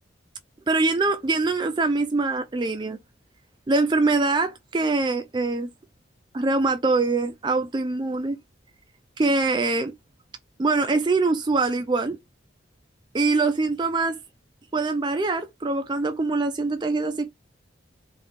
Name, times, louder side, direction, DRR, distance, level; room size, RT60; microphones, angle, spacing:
voice 1, 0.7-3.0 3.7-5.7 6.3-8.4 9.2-9.9 10.6-12.2 13.1-14.2 14.7-17.3, right 3 dB, 20° right, 0.4 m, -23 dB
3.5 x 2.8 x 3.6 m
head